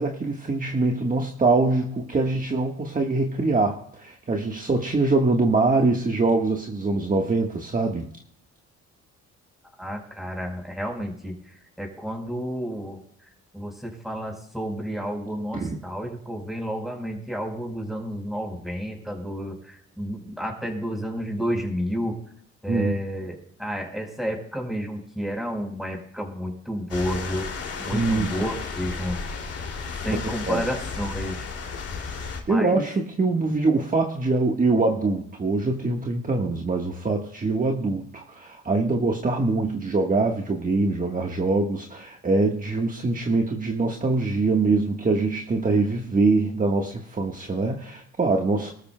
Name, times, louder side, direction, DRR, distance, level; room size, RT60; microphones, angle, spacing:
voice 1, 0.0-8.1 15.5-15.7 22.7-22.9 27.9-28.3 30.5-30.6 32.5-48.7, right 3 dB, 25° right, 1 dB, 1.4 m, -23 dB
voice 2, 9.8-13.0 13.5-22.2 22.6-27.5 27.8-29.2 30.0-31.5 32.5-32.8, equal, ahead, 1 dB, 4.3 m, -31 dB
sound 1, 26.9-32.4, left 5 dB, 55° left, 2.6 m, -33 dB
23.0 x 13.5 x 2.2 m, 0.67 s
cardioid pair, 90°, 30 cm